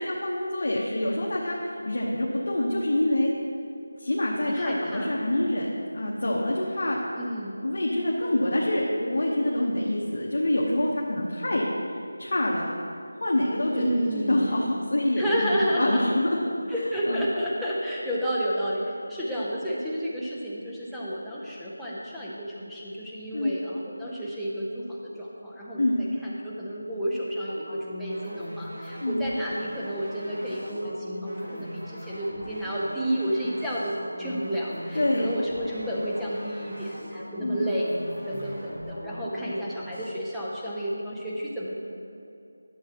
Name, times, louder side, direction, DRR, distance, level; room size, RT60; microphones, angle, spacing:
voice 1, 0.0-1.6 1.8-3.3 4.0-5.7 5.9-7.0 7.6-11.6 12.2-12.7 13.2-16.4 17.1-17.2 23.3-23.6 25.8-25.9 29.0-29.2 34.9-35.3 37.4-37.6, left 1 dB, 55° left, -4 dB, 1.0 m, -26 dB
voice 2, 4.5-5.2 7.2-7.6 13.7-14.7 15.2-16.0 16.7-41.8, equal, ahead, -9 dB, 0.5 m, -31 dB
sound 1, 27.5-40.1, equal, 35° right, 1.6 m, -40 dB
11.5 x 7.3 x 2.9 m, 2.7 s
figure-of-eight pair, 175°, 0 cm